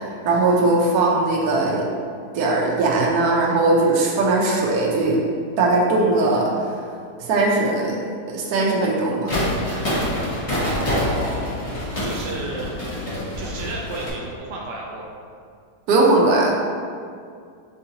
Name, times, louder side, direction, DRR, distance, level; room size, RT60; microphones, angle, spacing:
voice 1, 0.2-1.9 2.3-5.2 5.6-6.7 7.2-8.0 8.3-9.4 15.9-16.5, right 2 dB, 70° right, -3 dB, 1.2 m, -19 dB
sound 1, 9.3-14.1, left 1 dB, 45° left, 0.4 m, -26 dB
voice 2, 10.4-12.7 13.4-15.1, right 2 dB, 90° right, -2 dB, 1.3 m, -33 dB
6.2 x 2.6 x 2.8 m, 2.3 s
omnidirectional pair, 1.8 m